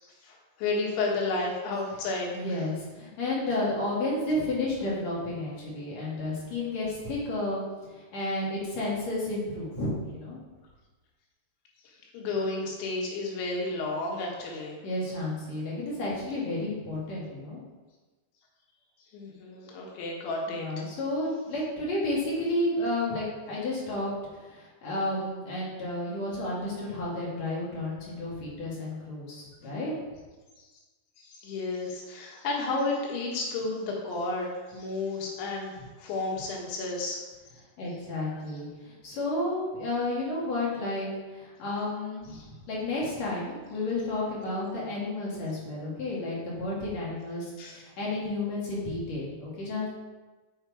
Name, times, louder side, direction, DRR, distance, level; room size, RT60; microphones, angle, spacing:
voice 1, 0.0-2.6 11.9-14.8 19.1-20.7 30.6-30.7 31.2-37.2 38.3-38.6 42.3-42.5 47.6-47.8, left 3 dB, 85° left, -2 dB, 3.8 m, -32 dB
voice 2, 2.3-7.6 8.1-10.4 14.8-17.6 20.5-24.1 24.5-29.9 37.8-41.1 41.3-42.4 42.7-49.9, left 2 dB, 50° left, -5 dB, 2.5 m, -31 dB
6.6 x 6.4 x 4.7 m, 1.3 s
omnidirectional pair, 5.2 m